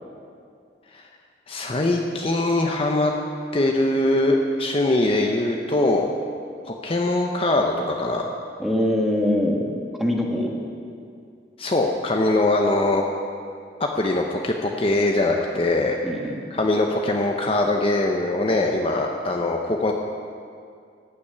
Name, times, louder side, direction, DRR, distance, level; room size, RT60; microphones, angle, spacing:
voice 1, 1.5-3.1 3.5-6.1 6.7-8.3 11.6-13.0 13.8-16.0 16.5-19.9, left 2 dB, 30° left, 2 dB, 0.7 m, -22 dB
voice 2, 8.6-9.7 10.0-10.6 16.0-16.4, left 1 dB, ahead, -1 dB, 1.4 m, -23 dB
15.0 x 6.0 x 9.4 m, 2.3 s
head